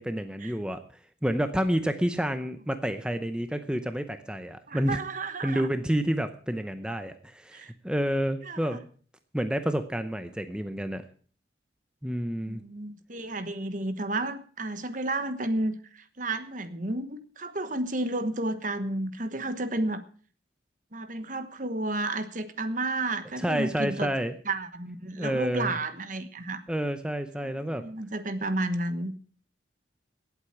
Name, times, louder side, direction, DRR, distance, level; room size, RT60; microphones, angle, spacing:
voice 1, 0.0-5.0 5.4-8.8 9.3-11.0 12.0-12.6 23.4-24.3 25.2-25.8 26.7-27.8, equal, 5° right, 9 dB, 0.7 m, -29 dB
voice 2, 4.7-5.7 7.5-7.7 8.4-8.8 12.4-20.0 20.9-24.1 24.4-26.6 27.4-29.1, right 2 dB, 45° right, 11 dB, 1.2 m, -32 dB
17.5 x 8.1 x 5.9 m, 0.43 s
head